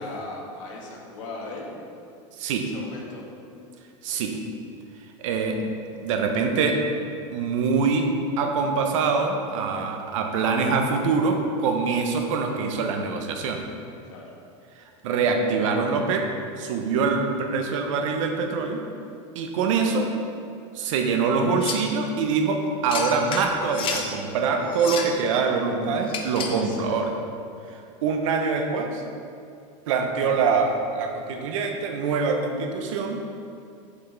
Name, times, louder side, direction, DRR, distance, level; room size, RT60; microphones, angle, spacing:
voice 1, 0.0-1.8 2.6-3.3 3.5-3.7 14.1-14.2 25.3-25.6 26.3-27.0, left 2 dB, 80° left, -1 dB, 1.6 m, -38 dB
voice 2, 2.4-2.7 4.0-4.4 5.2-5.7 6.0-6.8 7.3-13.6 15.0-16.3 16.6-18.8 19.3-20.1 20.7-27.1 28.0-29.0 29.9-33.2, right 4 dB, 75° right, 4 dB, 0.9 m, -24 dB
sound 1, 21.6-21.9 22.9-24.1 24.7-25.2 26.1-26.6, left 5 dB, 35° left, 0.7 m, -31 dB
7.7 x 5.7 x 3.3 m, 2.5 s
supercardioid pair, 135°, 16 cm